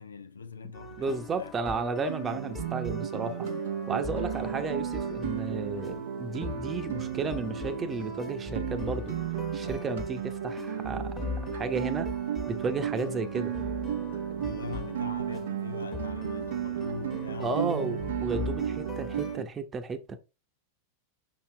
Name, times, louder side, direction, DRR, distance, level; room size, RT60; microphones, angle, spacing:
voice 1, 0.0-1.5 14.4-17.8, left 5 dB, 75° left, 0.6 m, -42 dB
sound 1, 0.7-19.4, left 4 dB, 15° left, 1.4 m, -41 dB
voice 2, 1.0-3.5 3.9-9.2 9.5-11.1 11.5-12.1 12.5-13.5 14.4-14.6 17.4-20.2, right 4 dB, 20° right, 0.9 m, -33 dB
Guitar, 2.1-19.4, right 9 dB, 60° right, 0.5 m, -34 dB
6.1 x 5.8 x 3.3 m
figure-of-eight pair, 90°, 0 cm